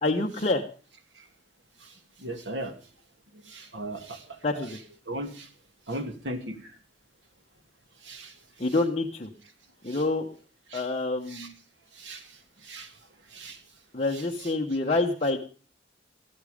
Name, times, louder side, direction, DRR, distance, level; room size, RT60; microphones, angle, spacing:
voice 1, 0.0-0.6 4.4-4.8 8.6-9.3 9.8-10.3 10.7-11.5 13.9-15.4, left 2 dB, 35° left, 0 dB, 1.2 m, -27 dB
voice 2, 2.2-2.7 3.5-4.4 5.1-5.5 5.9-6.6 8.0-8.3 9.9-10.0 10.7-10.8 11.3-11.5 12.0-12.3 12.6-12.9 13.3-13.6 14.1-14.5, right 1 dB, 80° right, 6 dB, 2.6 m, -37 dB
14.0 x 14.0 x 5.1 m, 0.39 s
head